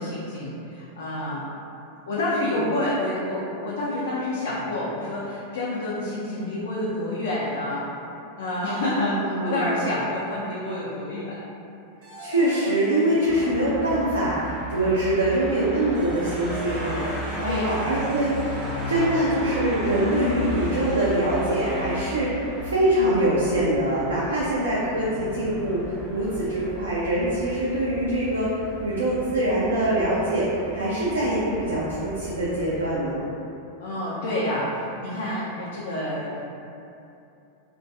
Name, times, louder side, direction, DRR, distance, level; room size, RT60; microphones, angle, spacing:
voice 1, 0.0-1.5 2.0-7.9 8.4-11.4 17.4-17.8 33.8-36.4, left 1 dB, 60° left, -7 dB, 0.4 m, -28 dB
voice 2, 8.7-9.8 12.2-18.3 18.9-33.2, right 1 dB, 75° right, -7 dB, 0.3 m, -24 dB
sound 1, 12.0-14.6 15.7-26.8, equal, 50° right, 0.7 m, -41 dB
sound 2, 13.3-32.9, right 1 dB, 15° right, 0.5 m, -35 dB
2.5 x 2.1 x 2.5 m, 2.8 s
figure-of-eight pair, 90°, 0 cm